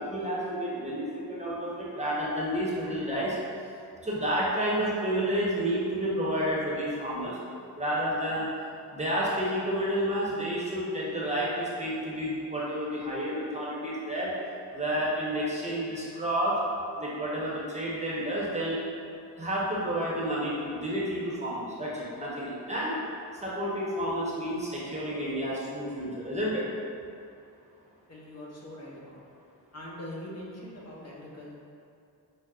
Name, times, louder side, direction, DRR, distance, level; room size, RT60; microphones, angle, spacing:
voice 1, 0.0-3.4 4.0-7.4 7.7-8.5 8.9-14.3 14.7-16.6 17.0-18.8 19.4-22.9 23.4-26.6, equal, 15° right, -6 dB, 0.8 m, -30 dB
voice 2, 28.1-29.3 29.7-31.5, left 1 dB, 40° left, -5 dB, 0.9 m, -42 dB
6.1 x 2.1 x 2.4 m, 2.5 s
cardioid pair, 70°, 39 cm